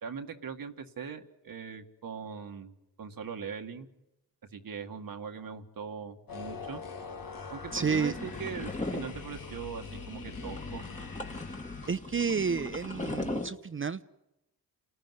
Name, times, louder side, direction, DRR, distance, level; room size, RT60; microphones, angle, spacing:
voice 1, 0.0-3.9 4.5-6.8 7.5-10.9, right 6 dB, 60° right, 5 dB, 1.8 m, -41 dB
sound 1, 6.3-11.9, left 5 dB, 60° left, 2.5 m, -43 dB
sound 2, 7.7-13.5, left 2 dB, 20° left, 2.4 m, -39 dB
voice 2, 7.7-8.1 11.9-14.0, right 5 dB, 30° right, 12 dB, 0.7 m, -30 dB
29.0 x 14.0 x 9.4 m, 0.90 s
supercardioid pair, 55°, 39 cm